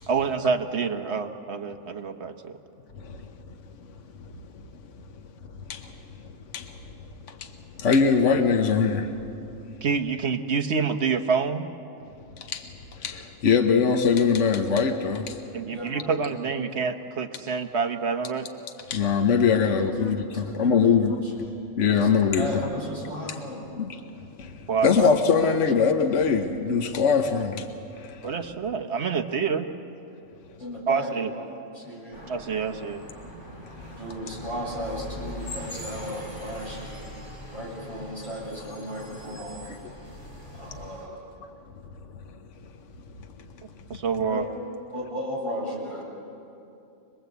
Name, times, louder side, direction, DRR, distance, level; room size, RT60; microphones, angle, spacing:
voice 1, 0.1-2.6 9.8-11.7 15.5-18.5 24.7-25.1 25.4-25.5 28.2-29.7 30.9-31.3 32.3-33.0 43.9-44.4, right 5 dB, 60° right, 6 dB, 1.4 m, -27 dB
voice 2, 3.0-3.3 4.2-4.8 5.7-5.9 6.5-7.0 7.3-9.1 12.4-15.4 18.9-21.2 21.8-22.7 23.8-23.9 24.4-27.7 28.0-28.3 39.3-39.9, left 6 dB, 70° left, 6 dB, 1.4 m, -23 dB
voice 3, 15.7-16.7 19.7-19.9 20.3-21.3 22.0-22.1 22.4-23.7 30.6-31.5 31.7-32.2 34.0-37.0 37.5-39.7 40.5-41.2 44.3-44.5 44.9-46.1, equal, 25° left, -4 dB, 7.1 m, -35 dB
sound 1, 32.1-41.1, left 1 dB, 40° left, 4.1 m, -41 dB
26.0 x 19.5 x 8.2 m, 2.7 s
omnidirectional pair, 1.3 m